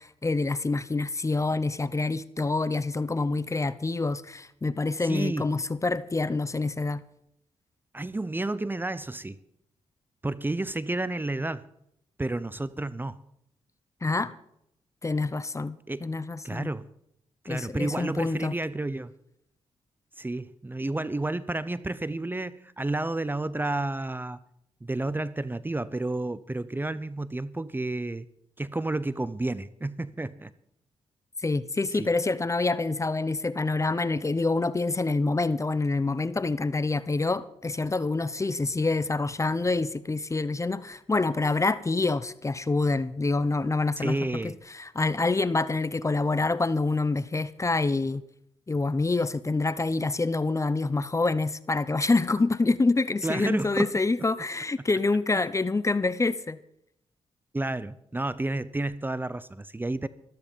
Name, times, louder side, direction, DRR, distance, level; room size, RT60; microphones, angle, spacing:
voice 1, 0.0-7.0 14.0-14.3 15.0-16.7 17.5-18.5 31.4-44.2 44.4-48.2 48.7-56.6, left 3 dB, 25° left, 0.7 m, -26 dB
voice 2, 5.0-5.5 7.9-9.4 10.2-11.7 12.2-13.2 15.9-16.1 16.4-16.9 17.4-19.1 20.2-24.4 24.8-28.2 28.6-30.5 32.0-32.1 44.0-44.6 53.2-53.9 57.5-60.1, right 2 dB, 15° right, 0.7 m, -31 dB
13.5 x 13.0 x 5.3 m
cardioid pair, 55°, 12 cm